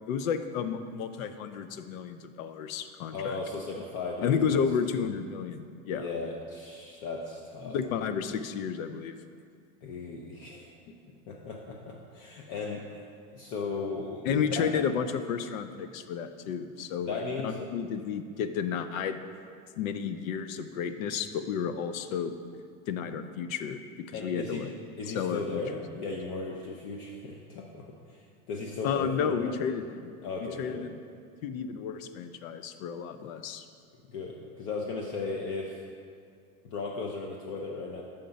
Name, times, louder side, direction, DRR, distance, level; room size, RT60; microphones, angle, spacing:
voice 1, 0.1-3.4 4.2-6.1 7.7-9.2 14.3-19.2 19.8-22.3 22.9-23.8 24.1-24.7 25.1-25.4 28.8-30.1 30.4-31.0 31.4-33.6, left 7 dB, 90° left, 10 dB, 0.6 m, -32 dB
voice 2, 3.1-4.6 5.9-7.8 8.1-8.2 9.8-11.0 11.3-13.1 13.3-14.7 17.0-17.6 24.1-24.6 25.0-29.5 30.2-30.9 34.1-35.8 36.7-38.0, left 3 dB, 45° left, 0 dB, 0.7 m, -36 dB
5.8 x 5.1 x 5.2 m, 2.3 s
supercardioid pair, 140°, 39 cm